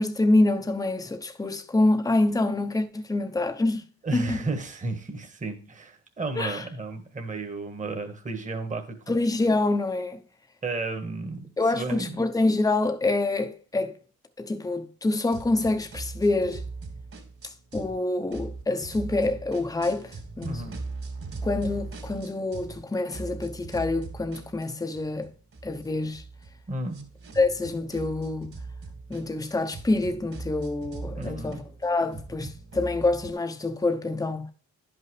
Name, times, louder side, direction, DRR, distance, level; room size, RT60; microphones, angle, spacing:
voice 1, 0.0-3.8 4.1-4.4 6.4-6.7 9.1-10.2 11.6-14.0 14.4-16.6 17.4-20.7 21.4-25.3 25.6-26.2 27.3-28.6 29.1-34.5, left 2 dB, 10° left, 0.9 m, -26 dB
voice 2, 4.0-9.2 10.6-12.1 20.4-20.8 26.7-27.1 31.2-31.6, right 3 dB, 25° right, 1.6 m, -33 dB
sound 1, 15.3-18.0 18.3-22.8 23.1-33.3, right 3 dB, 50° right, 2.7 m, -40 dB
10.5 x 5.8 x 3.3 m
cardioid pair, 90°, 30 cm